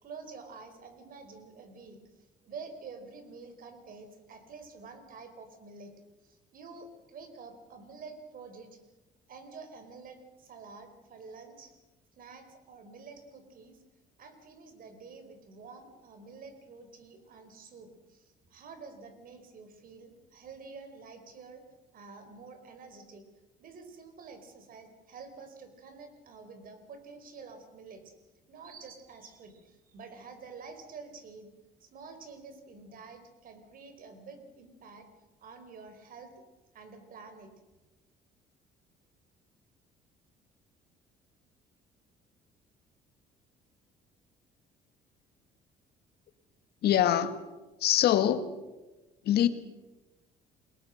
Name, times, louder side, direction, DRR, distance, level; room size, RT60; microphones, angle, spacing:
voice 1, 0.0-5.9 6.2-8.8 9.3-11.7 12.1-13.8 14.2-21.6 21.9-23.2 23.6-28.1 28.5-31.5 31.8-35.1 35.4-36.3 36.7-37.5, right 4 dB, 55° right, 8 dB, 4.8 m, -48 dB
voice 2, 46.8-47.4 47.8-48.5 49.2-49.5, left 11 dB, 70° left, 10 dB, 1.9 m, -24 dB
29.0 x 21.0 x 6.6 m, 1.1 s
cardioid pair, 110°, 17 cm